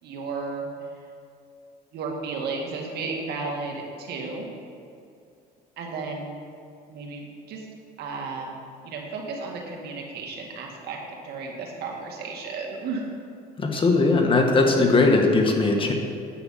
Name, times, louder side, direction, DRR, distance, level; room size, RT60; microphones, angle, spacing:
voice 1, 0.0-0.7 1.9-4.5 5.8-6.4 6.9-7.7 8.0-11.0 11.2-13.1, right 4 dB, 70° right, 0 dB, 2.0 m, -33 dB
voice 2, 13.6-15.9, left 3 dB, 30° left, 2 dB, 1.5 m, -19 dB
10.0 x 7.9 x 5.7 m, 2.5 s
cardioid pair, 110°, 17 cm